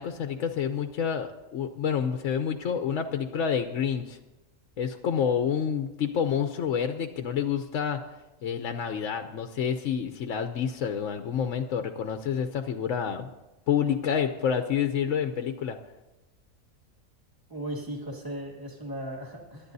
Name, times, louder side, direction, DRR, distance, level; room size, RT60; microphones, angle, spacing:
voice 1, 0.0-4.2 4.8-8.0 8.4-13.3 13.7-15.8, left 7 dB, 65° left, 6 dB, 1.0 m, -28 dB
voice 2, 17.5-19.7, right 1 dB, 15° right, -1 dB, 2.0 m, -37 dB
26.5 x 11.5 x 2.7 m, 1.0 s
omnidirectional pair, 1.5 m